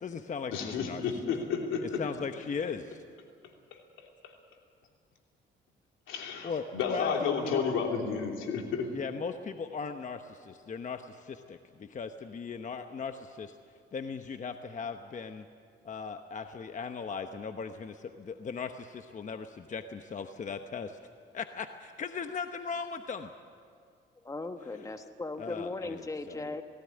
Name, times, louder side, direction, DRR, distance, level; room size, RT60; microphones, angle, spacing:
voice 1, 0.0-1.0 1.8-3.0 6.4-7.6 8.9-13.6 13.9-15.4 15.8-21.0 21.3-23.3 25.4-26.6, left 5 dB, 40° left, 7 dB, 1.0 m, -38 dB
voice 2, 0.5-2.0 6.1-8.9, left 6 dB, 90° left, 2 dB, 3.1 m, -31 dB
voice 3, 24.2-26.6, left 3 dB, 15° left, 7 dB, 1.3 m, -37 dB
18.5 x 16.5 x 9.8 m, 2.2 s
cardioid pair, 90°, 20 cm